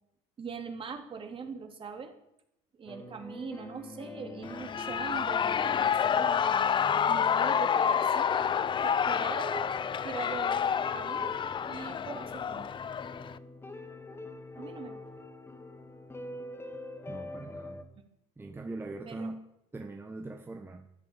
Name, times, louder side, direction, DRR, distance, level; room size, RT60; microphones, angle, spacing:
voice 1, 0.4-2.1 2.7-6.5 6.9-8.4 8.8-9.7 10.0-10.6 10.9-11.3 11.6-12.7 14.6-15.0 19.0-19.3, right 5 dB, 35° right, 5 dB, 3.2 m, -41 dB
sound 1, 2.9-17.8, left 2 dB, 15° left, 2.2 m, -45 dB
Shout / Cheering, 4.4-13.4, left 8 dB, 35° left, 0.7 m, -29 dB
voice 2, 17.1-17.9 18.4-19.4 19.7-20.9, right 2 dB, 15° right, 5 dB, 1.4 m, -41 dB
14.0 x 11.0 x 9.0 m, 0.82 s
supercardioid pair, 100°, 15 cm